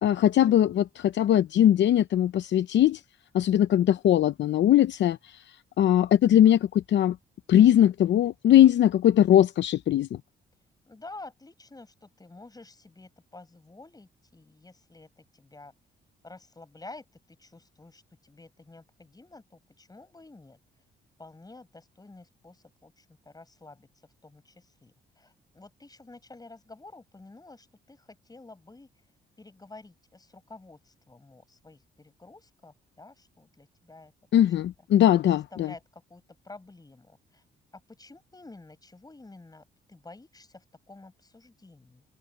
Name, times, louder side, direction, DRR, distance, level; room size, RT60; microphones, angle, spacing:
voice 1, 0.0-3.0 3.3-5.4 5.8-7.2 7.5-10.2 34.3-35.7, left 11 dB, 65° left, 0.7 m, -20 dB
voice 2, 10.9-15.7 16.2-20.6 21.2-23.9 24.2-28.9 29.4-34.1 34.6-34.7 35.5-37.4 37.7-42.0, left 2 dB, 20° left, 7.2 m, -50 dB
cardioid pair, 90°, 20 cm